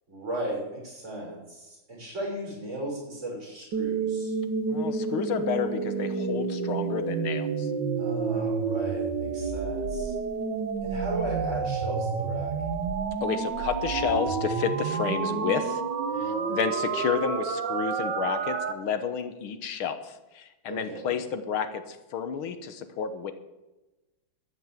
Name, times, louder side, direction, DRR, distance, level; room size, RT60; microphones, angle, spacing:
voice 1, 0.1-4.4 8.0-10.2 10.8-12.5 16.1-16.6 20.7-21.2, right 1 dB, 35° right, -3 dB, 6.6 m, -36 dB
sound 1, 3.7-18.7, right 5 dB, 60° right, 1.8 m, -29 dB
voice 2, 4.7-7.7 13.2-15.8 16.1-23.3, left 7 dB, 90° left, 10 dB, 2.0 m, -31 dB
13.5 x 9.5 x 7.5 m, 1.0 s
omnidirectional pair, 2.2 m